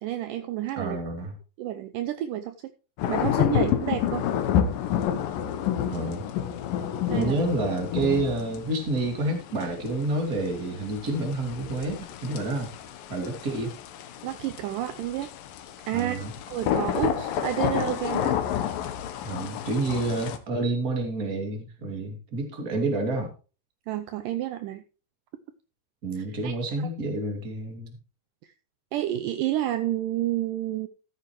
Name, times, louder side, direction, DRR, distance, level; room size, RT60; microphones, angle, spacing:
voice 1, 0.0-1.0 1.6-2.6 3.1-4.3 7.1-7.4 14.2-15.3 15.9-16.2 16.5-18.4 23.9-24.8 26.2-26.5 28.4-28.5 28.9-30.9, right 12 dB, 75° right, 9 dB, 2.1 m, -30 dB
voice 2, 0.8-1.3 5.9-6.2 7.1-12.7 13.1-13.7 15.9-16.3 19.2-23.3 26.0-28.0, right 2 dB, 25° right, 3 dB, 2.5 m, -29 dB
sound 1, 3.0-20.4, left 10 dB, 75° left, 2.7 m, -30 dB
13.5 x 9.8 x 3.1 m, 0.34 s
omnidirectional pair, 4.1 m